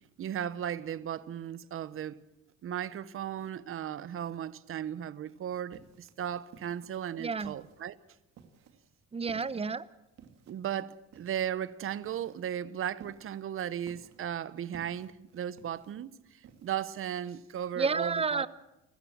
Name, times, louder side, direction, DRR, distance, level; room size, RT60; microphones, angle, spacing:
voice 1, 0.2-2.2 2.6-8.0 10.5-18.5, right 10 dB, 45° right, 0.9 m, -36 dB
sound 1, 5.3-17.0, right 7 dB, 65° right, 2.6 m, -56 dB
voice 2, 7.2-7.5 9.1-9.9 17.8-18.5, right 4 dB, 20° right, 0.8 m, -30 dB
29.5 x 13.5 x 7.4 m
cardioid pair, 110°, 29 cm